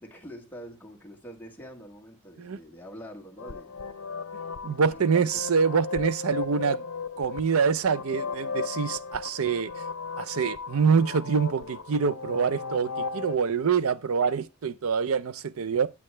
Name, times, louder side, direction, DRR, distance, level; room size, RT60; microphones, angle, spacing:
voice 1, 0.0-3.9 4.7-5.4 6.0-6.1, equal, 10° left, 1.4 m, -45 dB
sound 1, 3.4-13.4, left 4 dB, 75° left, 0.7 m, -36 dB
voice 2, 4.6-6.8 7.2-9.8 10.2-15.9, right 6 dB, 80° right, 0.6 m, -25 dB
8.5 x 8.5 x 3.2 m
head